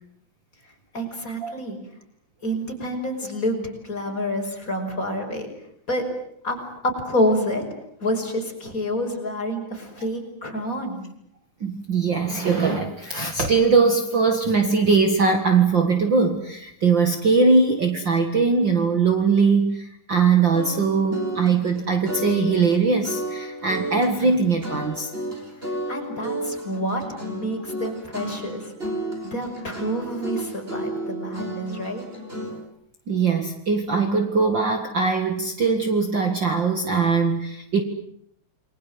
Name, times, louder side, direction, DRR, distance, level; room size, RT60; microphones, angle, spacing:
voice 1, 0.9-1.8 2.4-5.5 5.9-6.1 6.4-6.6 6.8-7.6 8.0-11.0 25.9-28.7 29.3-32.0, equal, 25° left, 3 dB, 6.0 m, -28 dB
voice 2, 11.6-25.1 33.1-37.8, right 4 dB, 40° right, 6 dB, 2.3 m, -21 dB
sound 1, 20.5-32.6, right 1 dB, 20° right, 5.4 m, -32 dB
29.5 x 22.0 x 7.8 m, 0.72 s
omnidirectional pair, 3.3 m